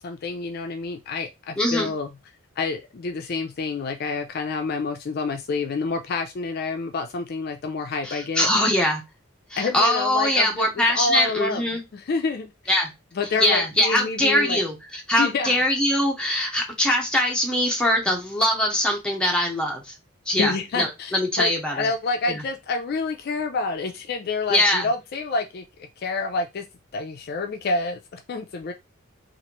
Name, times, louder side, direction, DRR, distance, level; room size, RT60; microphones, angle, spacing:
voice 1, 0.0-2.1 2.6-8.5 9.6-10.7 10.9-11.6 11.9-12.7 13.2-14.6 15.2-15.6 20.4-26.6 26.9-28.7, left 4 dB, 50° left, 6 dB, 0.4 m, -28 dB
voice 2, 1.6-1.9 8.0-9.0 9.5-11.8 12.7-12.9 13.4-19.9 20.3-21.9 22.3-22.4 24.5-24.9, left 1 dB, 5° left, 0 dB, 0.7 m, -22 dB
3.0 x 2.5 x 2.9 m, 0.23 s
head